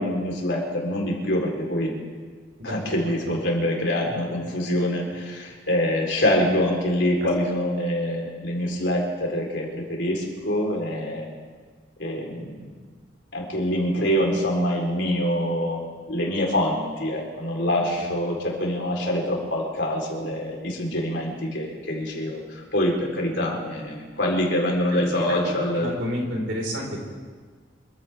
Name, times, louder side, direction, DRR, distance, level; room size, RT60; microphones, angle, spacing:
voice 1, 0.0-1.9 2.6-11.3 12.0-12.5 13.3-15.8 16.1-25.9, left 1 dB, 65° left, -1 dB, 4.1 m, -25 dB
voice 2, 25.8-27.0, equal, 75° right, -1 dB, 4.9 m, -29 dB
26.5 x 15.0 x 3.6 m, 1.5 s
head